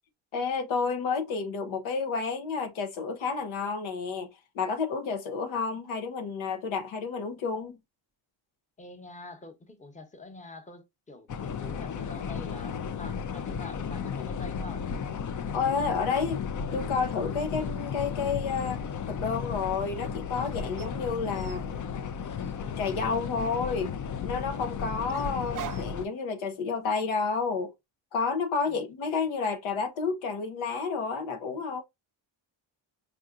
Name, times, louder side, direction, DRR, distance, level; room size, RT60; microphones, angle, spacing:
voice 1, 0.3-4.3 4.5-7.7 15.5-16.4 16.7-18.8 19.1-21.7 22.8-23.9 24.2-27.7 28.1-31.8, left 5 dB, 90° left, 0.8 m, -30 dB
voice 2, 8.8-14.8 28.7-28.8, left 2 dB, 15° left, 0.9 m, -46 dB
sound 1, 11.3-26.1, left 6 dB, 40° left, 0.5 m, -34 dB
sound 2, 17.7-19.8 20.8-24.0 25.1-26.0, right 9 dB, 45° right, 0.5 m, -47 dB
4.6 x 2.6 x 2.5 m
cardioid pair, 75°, 46 cm